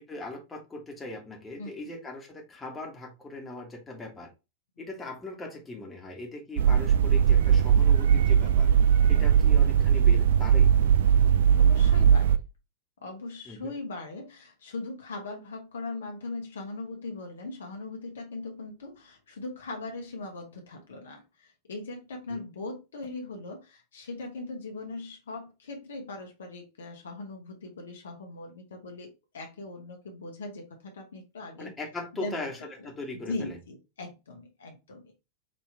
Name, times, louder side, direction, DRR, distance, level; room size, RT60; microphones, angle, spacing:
voice 1, 0.1-4.3 4.8-8.7 9.1-10.7 13.5-13.7 22.3-22.4 31.6-33.6, left 2 dB, 15° left, 1.4 m, -39 dB
sound 1, 6.6-12.4, right 8 dB, 60° right, 0.3 m, -20 dB
voice 2, 9.1-9.6 11.5-12.4 13.0-31.7 32.1-32.4 32.8-32.9 33.1-35.1, left 2 dB, 65° left, 1.1 m, -40 dB
5.1 x 3.0 x 3.3 m
figure-of-eight pair, 90°, 0 cm